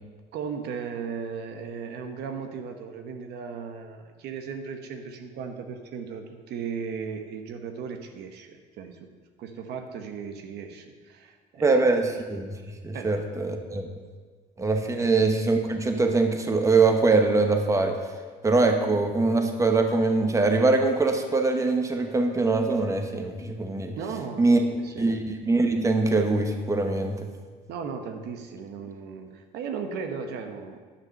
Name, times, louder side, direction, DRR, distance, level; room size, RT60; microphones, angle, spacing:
voice 1, 0.3-9.1 9.4-11.7 12.9-13.2 14.9-15.1 24.0-25.2 27.7-30.8, right 6 dB, 80° right, 6 dB, 1.1 m, -36 dB
voice 2, 11.6-12.5 12.8-13.9 14.6-18.0 18.4-23.9 24.4-24.6 25.0-27.2, right 3 dB, 20° right, 5 dB, 1.0 m, -23 dB
10.0 x 6.0 x 6.5 m, 1.5 s
cardioid pair, 110°, 17 cm